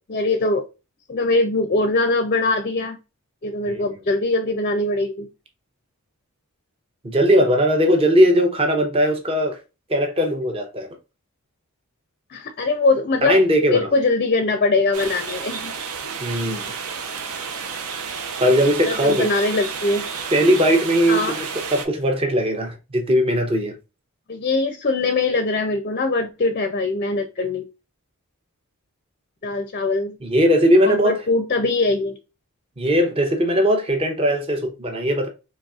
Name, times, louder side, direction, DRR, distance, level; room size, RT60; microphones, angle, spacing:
voice 1, 0.1-0.7 1.1-3.0 3.4-5.3 12.3-13.4 13.7-15.7 16.0-16.2 18.8-20.1 21.1-21.4 24.3-27.6 29.4-30.2 30.9-32.1, left 3 dB, 40° left, 0.4 m, -22 dB
voice 2, 7.0-9.6 9.9-10.9 13.2-13.9 16.2-16.7 18.4-19.3 20.3-21.4 21.7-23.7 30.2-31.2 32.8-35.3, equal, 25° right, 0.6 m, -19 dB
sound 1, 14.9-21.9, right 6 dB, 80° right, 0.6 m, -31 dB
4.0 x 3.1 x 2.3 m
head